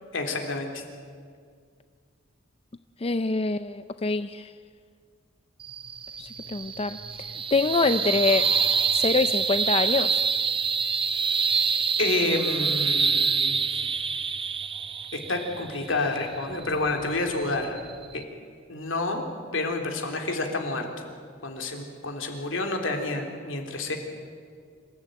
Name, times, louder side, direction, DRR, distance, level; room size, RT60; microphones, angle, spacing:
voice 1, 0.1-0.8 12.0-13.8 15.1-17.8 18.1-18.2 18.7-19.2 19.5-21.0 21.4-24.0, left 2 dB, 70° left, 3 dB, 3.5 m, -29 dB
voice 2, 3.0-4.5 6.2-7.0 7.5-8.5 8.9-10.2, left 3 dB, 30° left, 10 dB, 0.5 m, -25 dB
sound 1, 5.6-18.2, right 5 dB, 25° right, 0.8 m, -27 dB
26.5 x 15.5 x 9.3 m, 2.1 s
head